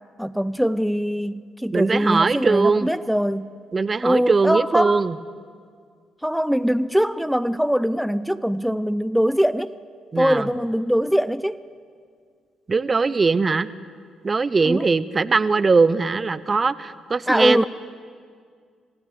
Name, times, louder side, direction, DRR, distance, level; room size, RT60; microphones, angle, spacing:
voice 1, 0.2-3.5 4.0-5.0 6.2-9.7 10.2-11.6 14.6-14.8 17.3-17.6, equal, ahead, 13 dB, 0.7 m, -22 dB
voice 2, 1.7-2.9 3.7-5.1 10.1-10.5 12.7-13.7 14.2-17.6, right 4 dB, 35° right, 16 dB, 0.9 m, -20 dB
26.5 x 16.0 x 8.7 m, 2.1 s
hypercardioid pair, 50°, 0 cm